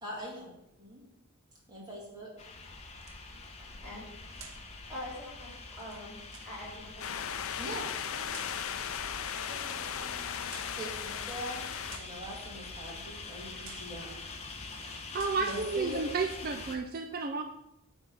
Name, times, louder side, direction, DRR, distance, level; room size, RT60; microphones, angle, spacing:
voice 1, 0.0-0.5 0.8-1.0 1.7-2.3 7.6-8.3 10.8-11.6 11.9-14.1 15.4-16.0, equal, 20° right, -4 dB, 2.2 m, -42 dB
sound 1, 2.4-16.8, left 3 dB, 30° left, 0.9 m, -45 dB
sound 2, 2.9-3.5 4.3-4.7 5.7-6.6 7.8-8.6 9.5-9.8 10.5-10.8 11.6-12.2 13.1-13.3 13.6-14.0 14.5-14.8 15.1-15.5, right 7 dB, 60° right, 0.8 m, -52 dB
voice 2, 3.6-4.0 4.4-4.6 4.9-5.5 5.8-6.2 6.5-7.2 9.1-10.8, left 1 dB, 5° left, -8 dB, 3.6 m, -46 dB
sound 3, 7.0-12.0, left 8 dB, 70° left, 0.5 m, -37 dB
voice 3, 14.8-17.4, right 4 dB, 45° right, 5 dB, 0.5 m, -32 dB
9.6 x 3.6 x 7.0 m, 0.85 s
head